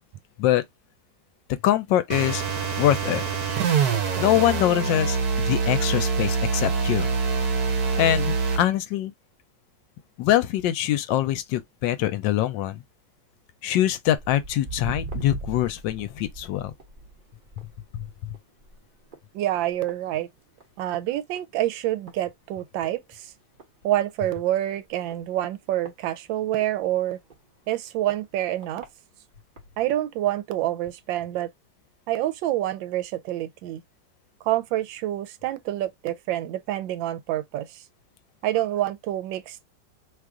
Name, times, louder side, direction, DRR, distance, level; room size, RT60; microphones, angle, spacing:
voice 1, 1.5-2.4 2.8-3.2 4.2-7.1 8.0-9.1 10.2-12.8 13.6-16.7 17.9-18.4, left 13 dB, 80° left, 1.2 m, -24 dB
sound 1, 2.1-8.7, right 5 dB, 65° right, 1.2 m, -25 dB
Walk footsteps, 14.2-20.8 21.1-21.5 22.1-22.2 22.8-22.9 23.3-23.4 23.6-23.7 24.3-24.4 25.1-26.7 27.3-27.4 28.1-28.2 28.6-28.9 29.6-29.7, right 3 dB, 40° right, 0.8 m, -39 dB
voice 2, 19.3-20.3 20.8-23.3 23.8-27.2 27.7-28.9 29.8-31.5 32.1-33.8 34.4-37.8 38.4-39.6, right 13 dB, 85° right, 1.3 m, -27 dB
3.1 x 2.4 x 3.5 m
omnidirectional pair, 2.0 m